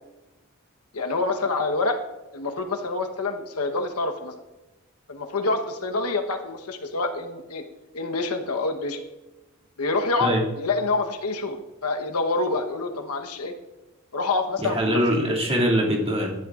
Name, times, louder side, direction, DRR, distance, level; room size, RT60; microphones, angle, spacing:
voice 1, 0.9-2.0 2.3-4.3 5.1-7.6 7.9-9.0 9.8-13.5 14.1-15.2, left 3 dB, 85° left, 5 dB, 1.1 m, -27 dB
voice 2, 14.6-16.3, equal, 25° right, -3 dB, 2.4 m, -23 dB
16.5 x 11.0 x 2.5 m, 1.1 s
head